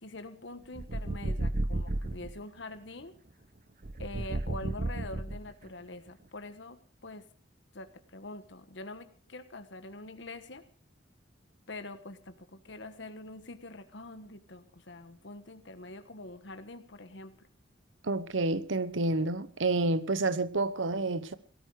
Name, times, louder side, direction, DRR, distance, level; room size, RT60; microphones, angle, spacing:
voice 1, 0.0-3.1 4.0-7.3 7.7-10.6 11.7-17.5, left 2 dB, 65° left, 1.4 m, -45 dB
sound 1, 0.7-2.3 3.8-5.7, right 2 dB, 45° right, 0.8 m, -33 dB
voice 2, 18.0-21.3, right 2 dB, 80° right, 1.0 m, -29 dB
17.5 x 13.5 x 4.9 m
head